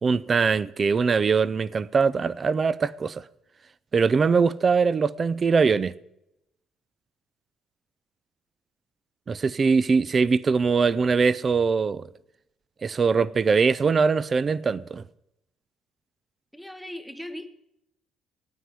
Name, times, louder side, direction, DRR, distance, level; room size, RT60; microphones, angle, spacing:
voice 1, 0.0-3.2 3.9-5.9 9.3-12.0 12.8-15.0, right 5 dB, 30° right, 0.4 m, -22 dB
voice 2, 16.5-17.5, left 1 dB, ahead, 1.0 m, -38 dB
9.5 x 9.3 x 9.8 m
cardioid pair, 145°, 0 cm